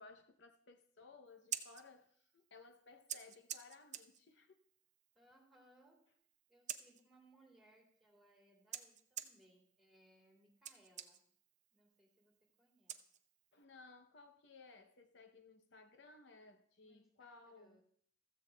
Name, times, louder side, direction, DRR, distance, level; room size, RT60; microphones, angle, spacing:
voice 1, 0.0-4.6 13.5-17.8, left 3 dB, 65° left, 0.7 m, -60 dB
Scissors, 1.3-13.6, right 10 dB, 40° right, 0.6 m, -52 dB
voice 2, 5.1-6.0 6.5-11.2 11.7-13.0 16.8-17.8, right 1 dB, ahead, 2.5 m, -69 dB
15.0 x 14.0 x 2.2 m
head